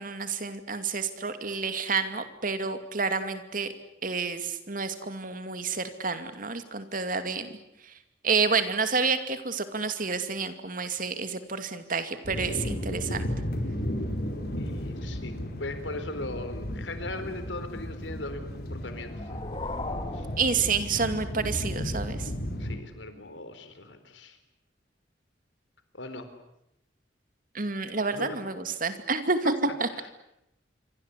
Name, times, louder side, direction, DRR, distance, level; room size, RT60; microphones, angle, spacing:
voice 1, 0.0-3.7 4.0-7.5 7.8-7.9 8.2-13.3 20.4-22.3 27.5-29.5 29.8-29.9, right 4 dB, 50° right, 10 dB, 2.5 m, -29 dB
sound 1, 12.2-22.8, equal, 55° left, 4.7 m, -34 dB
voice 2, 14.6-15.3 15.6-19.4 20.1-20.3 22.6-24.4 25.9-26.3 28.1-28.4 29.7-30.1, left 2 dB, 90° left, 10 dB, 4.1 m, -39 dB
sound 2, 18.8-21.4, left 2 dB, 30° left, 2.6 m, -38 dB
27.0 x 24.5 x 8.4 m, 0.84 s
head